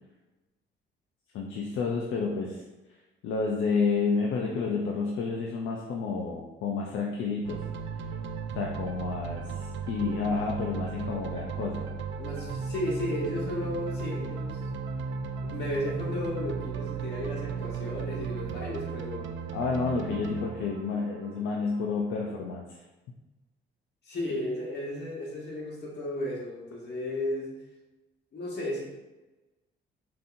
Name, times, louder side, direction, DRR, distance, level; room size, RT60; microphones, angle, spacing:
voice 1, 1.3-2.6 2.9-7.6 8.5-11.9 19.5-22.8, left 4 dB, 80° left, -1 dB, 0.5 m, -30 dB
sound 1, 7.4-22.2, right 5 dB, 70° right, 0.4 m, -36 dB
voice 2, 12.2-14.6 15.4-19.3 24.0-27.5 28.3-28.9, left 1 dB, 60° left, -3 dB, 1.4 m, -34 dB
5.3 x 2.8 x 2.6 m, 1.1 s
cardioid pair, 90°, 20 cm